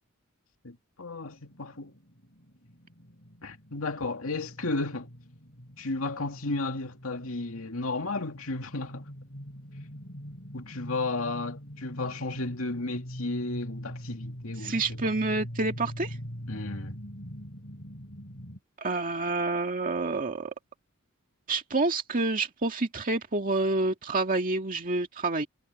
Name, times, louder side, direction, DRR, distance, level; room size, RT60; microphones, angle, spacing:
voice 1, 0.6-1.9 3.4-5.1 5.8-9.1 10.5-14.7 16.5-17.0, left 3 dB, 75° left, 2.4 m, -33 dB
sound 1, 1.2-18.6, equal, 55° left, 6.4 m, -43 dB
voice 2, 14.6-16.2 18.8-20.5 21.5-25.5, right 3 dB, 40° right, 2.0 m, -28 dB
head